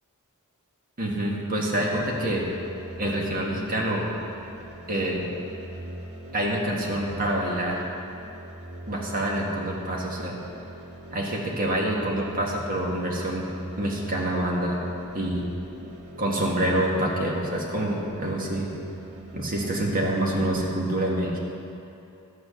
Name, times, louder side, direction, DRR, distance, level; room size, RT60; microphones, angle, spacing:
voice 1, 1.0-2.5 3.0-4.0 4.9-5.2 6.3-7.8 8.9-10.4 11.1-13.5 13.8-14.8 15.1-15.5 16.2-18.7 19.3-21.4, right 1 dB, 40° right, -2 dB, 1.6 m, -26 dB
sound 1, 1.9-20.5, right 1 dB, 85° right, 1.3 m, -42 dB
12.0 x 6.3 x 6.4 m, 2.8 s
head